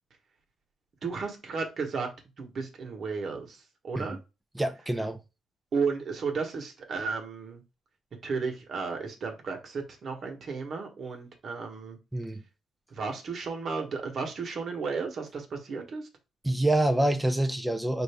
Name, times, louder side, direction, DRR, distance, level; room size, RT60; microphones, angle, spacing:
voice 1, 1.0-2.1 2.4-4.2 5.7-7.6 8.2-12.0 12.9-16.1, right 5 dB, 50° right, 1.3 m, -33 dB
voice 2, 4.5-5.2 12.1-12.4 16.4-18.0, right 1 dB, 10° right, 0.7 m, -26 dB
5.1 x 2.7 x 3.5 m
cardioid pair, 95°, 0 cm